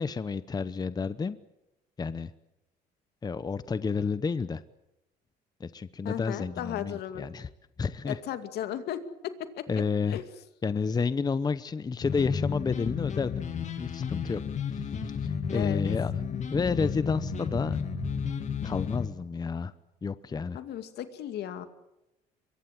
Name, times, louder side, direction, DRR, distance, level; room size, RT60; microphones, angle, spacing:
voice 1, 0.0-1.4 2.0-2.3 3.2-4.6 5.6-7.5 7.8-8.2 9.7-10.2 10.6-13.3 13.8-14.4 14.7-16.1 16.5-17.8 18.6-19.7 20.0-20.6, left 5 dB, 25° left, 14 dB, 0.8 m, -30 dB
voice 2, 6.0-7.3 8.1-9.0 9.2-10.2 15.5-15.8 20.5-21.7, left 11 dB, 75° left, 9 dB, 2.4 m, -35 dB
sound 1, 12.0-19.1, left 6 dB, 45° left, 2.4 m, -32 dB
23.5 x 22.5 x 7.6 m, 0.91 s
cardioid pair, 110°, 17 cm